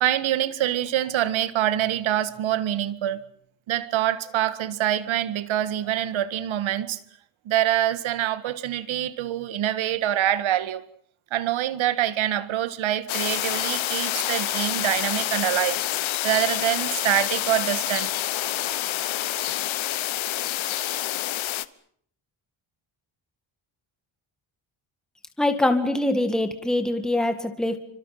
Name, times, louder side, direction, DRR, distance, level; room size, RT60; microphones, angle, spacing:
voice 1, 0.0-3.3 3.7-7.0 7.5-10.8 11.3-15.8 16.2-18.1, right 12 dB, 80° right, 1.9 m, -25 dB
sound 1, 13.1-21.7, left 14 dB, 75° left, 1.3 m, -27 dB
voice 2, 25.4-27.8, left 1 dB, ahead, 1.9 m, -23 dB
28.5 x 25.5 x 5.8 m
cardioid pair, 170°, 47 cm